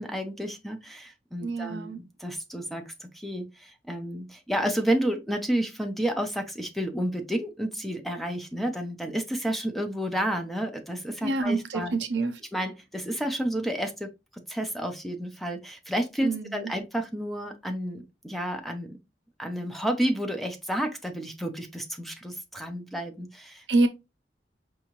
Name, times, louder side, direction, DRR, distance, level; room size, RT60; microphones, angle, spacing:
voice 1, 0.0-12.0 12.5-19.0 19.4-23.6, right 1 dB, ahead, 0.6 m, -31 dB
voice 2, 1.4-2.0 11.2-12.3 16.2-16.7 23.7-23.9, right 3 dB, 85° right, 0.7 m, -26 dB
4.7 x 2.7 x 2.9 m
head